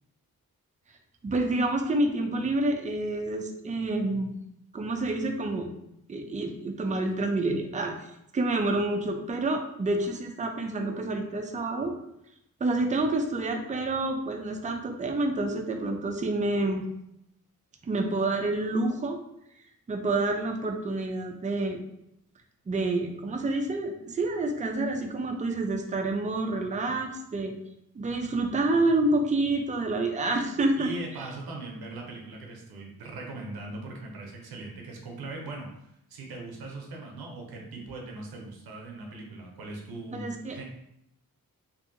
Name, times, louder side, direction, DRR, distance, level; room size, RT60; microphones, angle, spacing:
voice 1, 1.2-4.3 4.7-5.7 6.1-7.9 8.3-11.9 12.6-16.8 17.8-19.2 19.9-21.8 22.7-27.6 28.0-30.9 40.1-40.6, right 2 dB, 20° right, 4 dB, 0.4 m, -28 dB
voice 2, 30.8-40.6, right 2 dB, 90° right, 0 dB, 0.6 m, -40 dB
2.6 x 2.6 x 2.5 m, 0.79 s
cardioid pair, 55°, 36 cm